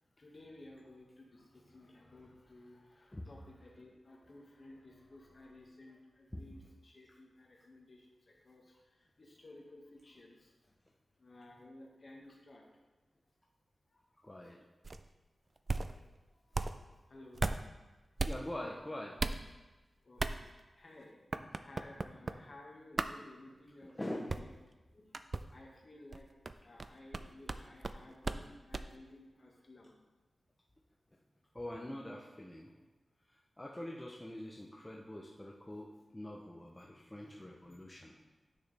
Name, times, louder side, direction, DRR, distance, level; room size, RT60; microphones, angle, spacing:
voice 1, 0.2-10.5 11.2-12.6 15.9-16.0 16.5-16.6 17.1-17.4 20.0-21.1 21.6-24.5 24.9-25.2 25.5-26.3 26.6-30.0 32.7-32.8 36.7-36.9 37.2-38.1, left 1 dB, 45° left, -2 dB, 1.7 m, -56 dB
voice 2, 14.2-14.6 18.3-19.2 23.8-24.3 31.5-32.7 33.6-38.1, left 1 dB, 15° left, -2 dB, 0.7 m, -44 dB
sound 1, 14.8-15.1 15.6-16.0 16.5-16.8 17.3-17.7 18.2-18.4 19.2-19.4 20.2-20.4 21.3-22.3 23.0-23.1 24.3-24.5 25.1-25.4 26.1-28.4 28.7-28.9, right 3 dB, 40° right, 0.3 m, -35 dB
10.0 x 6.3 x 3.4 m, 1.2 s
wide cardioid pair, 110°, 0 cm